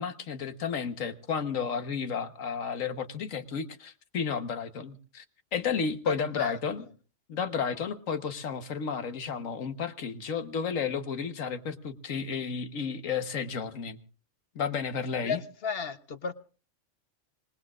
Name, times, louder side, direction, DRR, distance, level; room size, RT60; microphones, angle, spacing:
voice 1, 0.0-5.2 5.5-6.9 7.3-14.0 14.5-15.4, left 6 dB, 85° left, 9 dB, 1.5 m, -32 dB
voice 2, 6.1-6.6 15.2-16.3, left 5 dB, 55° left, 10 dB, 1.1 m, -33 dB
26.5 x 19.5 x 2.4 m, 0.38 s
omnidirectional pair, 1.3 m